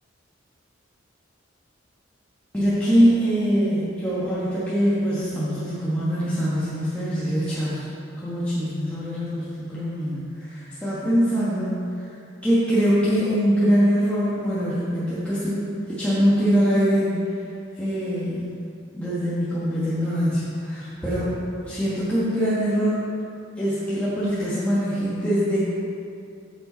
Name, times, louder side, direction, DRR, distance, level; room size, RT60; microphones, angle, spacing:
voice 1, 2.5-7.8 8.2-12.1 12.4-15.6 15.9-17.1 17.8-18.5 18.9-21.3 21.7-23.0 23.6-25.6, equal, 5° left, -12 dB, 1.3 m, -23 dB
8.6 x 7.4 x 4.0 m, 2.4 s
head